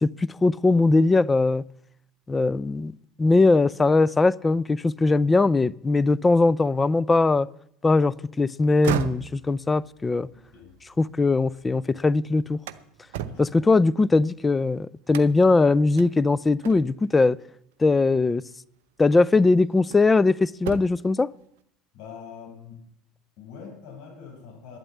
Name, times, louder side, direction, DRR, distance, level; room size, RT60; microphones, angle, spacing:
voice 1, 0.0-1.6 2.3-2.9 3.2-7.5 7.8-10.3 11.0-12.6 13.4-17.4 17.8-18.4 19.0-21.3, left 3 dB, 20° left, 0.5 m, -20 dB
sound 1, 8.6-11.8 12.2-14.5 15.1-15.6 16.0-16.1 16.6-17.1 18.4-18.5 19.1-20.2 20.5-21.1, right 10 dB, 70° right, 0.8 m, -36 dB
voice 2, 13.2-13.7 21.9-22.8 23.4-24.8, left 6 dB, 65° left, 6.6 m, -43 dB
12.0 x 10.0 x 8.5 m
hypercardioid pair, 70°, 0 cm